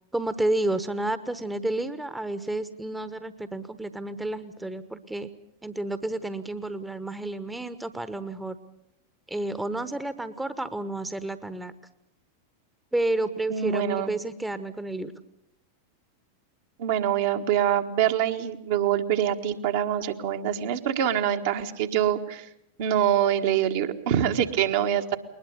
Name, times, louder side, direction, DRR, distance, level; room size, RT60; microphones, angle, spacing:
voice 1, 0.1-5.3 5.6-8.6 9.3-11.7 12.9-15.1, right 2 dB, 5° right, 13 dB, 1.1 m, -30 dB
voice 2, 13.5-14.1 16.8-22.5 22.8-25.2, right 10 dB, 50° right, 4 dB, 1.7 m, -25 dB
21.0 x 20.5 x 8.3 m, 0.77 s
figure-of-eight pair, 90°, 0 cm